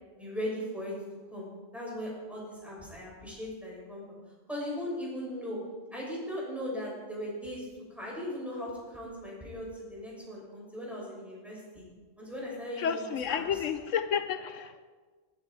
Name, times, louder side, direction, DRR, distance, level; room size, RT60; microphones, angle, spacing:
voice 1, 0.2-0.9 1.3-1.5 1.7-4.0 4.5-5.6 5.9-11.8 12.2-13.4, equal, ahead, -5 dB, 6.5 m, -38 dB
voice 2, 12.8-14.8, left 7 dB, 80° left, 10 dB, 1.1 m, -31 dB
21.5 x 11.0 x 4.9 m, 1.4 s
omnidirectional pair, 1.3 m